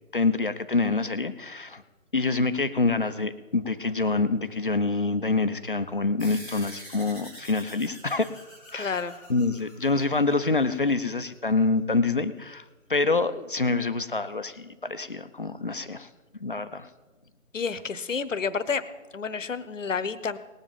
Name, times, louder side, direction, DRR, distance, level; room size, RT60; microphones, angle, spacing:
voice 1, 0.1-1.8 2.1-8.3 8.7-9.0 9.3-12.6 12.9-16.1 16.4-16.9, left 3 dB, 40° left, 11 dB, 0.6 m, -26 dB
sound 1, 6.2-11.1, equal, 5° right, 1.9 m, -46 dB
voice 2, 8.7-9.2 17.5-18.8 19.1-20.4, left 5 dB, 65° left, 15 dB, 0.9 m, -30 dB
19.0 x 7.5 x 5.4 m, 1.2 s
figure-of-eight pair, 160°, 42 cm